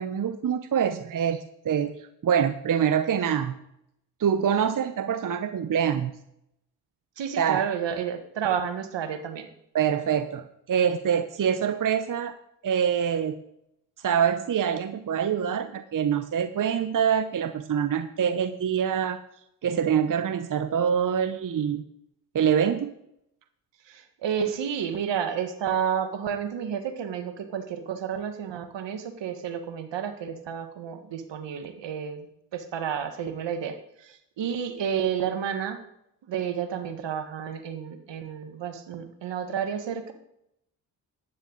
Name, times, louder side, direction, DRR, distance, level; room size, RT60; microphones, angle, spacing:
voice 1, 0.0-3.5 4.2-6.1 7.4-7.6 9.7-12.3 12.6-13.4 14.0-19.2 19.6-21.8 22.3-22.9, right 8 dB, 45° right, 10 dB, 0.8 m, -25 dB
voice 2, 7.2-9.5 23.9-32.2 32.5-35.8 36.3-40.1, right 8 dB, 65° right, 8 dB, 1.6 m, -31 dB
12.5 x 9.6 x 4.0 m, 0.77 s
supercardioid pair, 50°, 46 cm